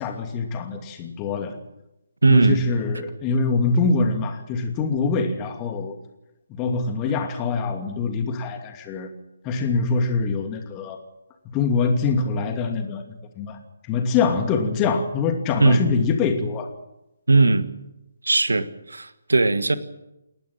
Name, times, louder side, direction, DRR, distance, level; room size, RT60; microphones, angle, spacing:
voice 1, 0.0-1.6 2.3-6.0 6.5-9.1 9.4-11.0 11.5-13.6 13.9-16.7, left 4 dB, 20° left, 2.7 m, -24 dB
voice 2, 2.2-2.6 15.6-15.8 17.3-17.7 18.2-19.8, right 3 dB, 70° right, 1.5 m, -18 dB
29.0 x 12.0 x 8.9 m
figure-of-eight pair, 140°, 0 cm